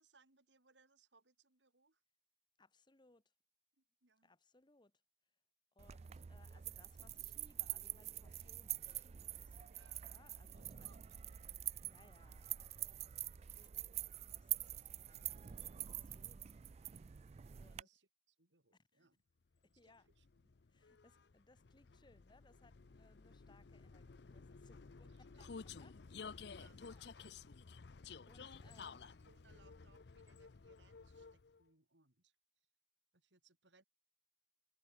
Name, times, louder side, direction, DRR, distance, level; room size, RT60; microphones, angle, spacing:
voice 1, 0.0-2.0 3.8-4.4 9.0-9.3 9.6-10.0 10.5-11.6 17.8-19.2 19.8-20.6 25.0-25.7 26.6-27.4 28.4-28.7 29.0-32.7 33.1-33.8, right 3 dB, 90° right, 3.7 m, -72 dB
voice 2, 2.6-3.2 4.2-4.9 5.7-10.9 11.8-13.3 13.6-13.7 14.3-17.9 18.9-19.1 19.6-20.1 20.7-26.5 26.9-27.0 28.3-29.0, left 2 dB, 25° left, 1.2 m, -69 dB
sound 1, 5.8-17.8, right 12 dB, 35° right, 0.3 m, -46 dB
Vehicle, 19.7-31.6, left 5 dB, 65° left, 0.6 m, -54 dB
head